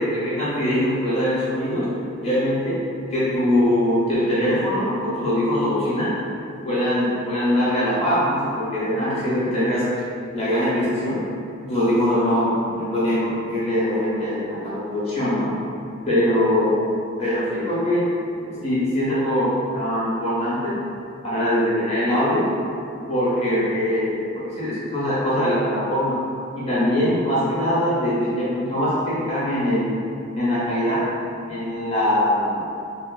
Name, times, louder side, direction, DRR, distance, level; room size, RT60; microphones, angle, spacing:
voice 1, 0.0-1.9 2.2-2.8 3.1-6.2 6.6-9.8 10.3-11.2 11.6-15.5 16.0-16.8 17.2-18.1 18.4-20.8 21.2-22.5 23.1-26.2 26.6-30.0 30.4-31.0 31.5-32.6, left 1 dB, 30° left, -10 dB, 0.7 m, -22 dB
2.9 x 2.1 x 2.3 m, 2.5 s
head